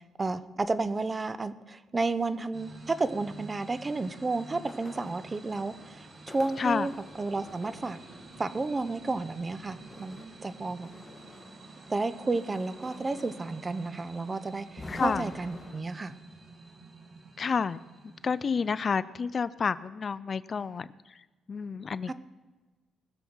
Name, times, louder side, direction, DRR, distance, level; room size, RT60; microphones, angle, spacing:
voice 1, 0.0-8.0 8.4-10.9 11.9-16.2 22.1-22.2, right 3 dB, 25° right, 14 dB, 0.8 m, -32 dB
sound 1, 2.5-18.9, right 3 dB, 40° right, 2.1 m, -49 dB
sound 2, 4.6-15.8, left 2 dB, 20° left, 1.8 m, -50 dB
voice 2, 14.9-15.3 17.4-17.8 18.2-20.9 21.5-22.1, left 5 dB, 40° left, 17 dB, 0.4 m, -29 dB
20.0 x 7.1 x 6.2 m, 1.2 s
cardioid pair, 90°, 0 cm